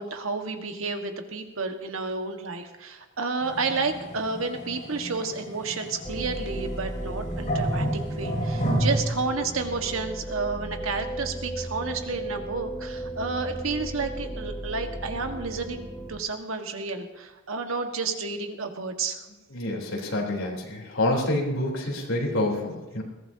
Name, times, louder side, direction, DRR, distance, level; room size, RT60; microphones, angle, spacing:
voice 1, 0.0-19.2, right 4 dB, 80° right, 5 dB, 1.6 m, -31 dB
sound 1, 3.4-9.2, right 1 dB, 40° left, 5.6 m, -30 dB
sound 2, 6.0-16.2, right 1 dB, ahead, 1.0 m, -35 dB
voice 2, 19.5-23.0, left 1 dB, 85° left, -1 dB, 3.7 m, -27 dB
21.5 x 16.0 x 2.8 m, 1.1 s
head